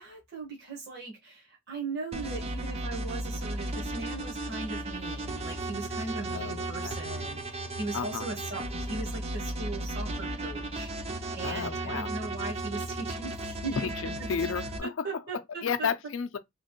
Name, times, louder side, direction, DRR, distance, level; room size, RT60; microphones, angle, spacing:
voice 1, 0.0-13.9 14.8-15.9, right 3 dB, 50° right, 1.1 m, -39 dB
sound 1, 2.1-14.8, right 2 dB, 25° right, 0.5 m, -35 dB
voice 2, 6.3-7.0 7.9-8.3 11.4-12.1 13.8-15.1 15.6-16.4, left 6 dB, 60° left, 0.5 m, -32 dB
3.1 x 2.9 x 2.9 m
head